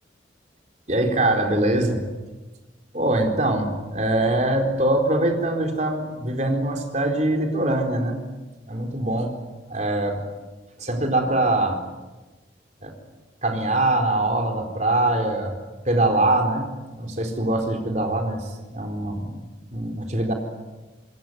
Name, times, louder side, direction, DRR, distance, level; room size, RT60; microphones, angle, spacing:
voice 1, 0.9-2.0 2.9-8.2 8.7-9.4 9.7-10.2 10.8-11.8 12.8-12.9 13.4-15.5 15.8-16.7 16.9-19.4 19.7-20.3, right 1 dB, 40° right, 3 dB, 4.3 m, -23 dB
26.5 x 22.0 x 9.4 m, 1.2 s
head